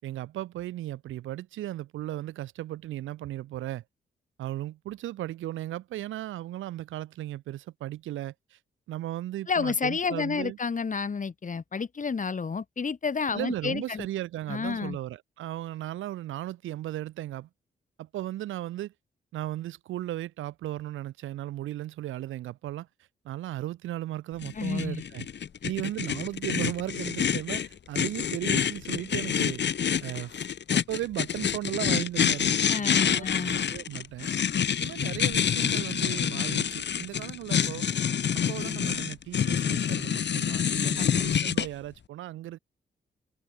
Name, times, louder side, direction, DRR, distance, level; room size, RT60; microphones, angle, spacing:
voice 1, 0.0-3.8 4.4-8.6 8.9-10.6 13.3-17.5 18.0-18.9 19.3-22.9 23.2-25.3 25.6-29.6 30.0-30.4 30.7-34.3 34.8-37.8 38.5-42.6, right 14 dB, 85° right, 6.1 m, -36 dB
voice 2, 9.5-14.1 14.5-15.0 24.5-25.0 32.7-33.6 41.0-41.2, left 5 dB, 40° left, 1.5 m, -30 dB
sound 1, 24.4-41.7, left 8 dB, 65° left, 3.0 m, -27 dB
supercardioid pair, 50°, 20 cm